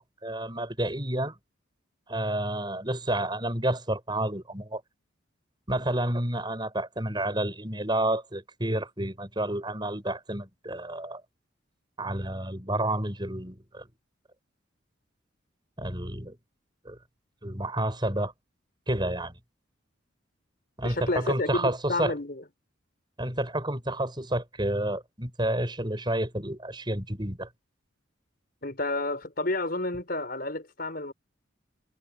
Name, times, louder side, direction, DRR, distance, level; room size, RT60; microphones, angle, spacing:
voice 1, 0.0-1.4 2.1-4.8 5.7-11.2 12.0-13.9 15.8-16.4 16.9-17.0 17.4-18.3 18.9-19.3 20.8-22.1 23.2-27.5, right 1 dB, 25° right, 7.4 m, -30 dB
voice 2, 20.8-22.4 28.6-31.1, left 2 dB, 50° left, 5.2 m, -30 dB
head